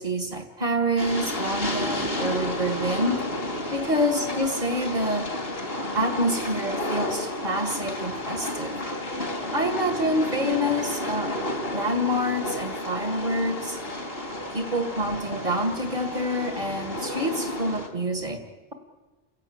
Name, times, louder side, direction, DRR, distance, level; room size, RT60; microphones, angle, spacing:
voice 1, 0.0-3.2 3.7-5.3 6.0-8.8 9.5-11.4 11.7-13.8 14.5-18.4, equal, 45° right, 5 dB, 2.0 m, -27 dB
Train, 1.0-17.9, left 1 dB, 70° left, 3.5 m, -31 dB
29.5 x 16.0 x 8.9 m, 1.3 s
omnidirectional pair, 1.0 m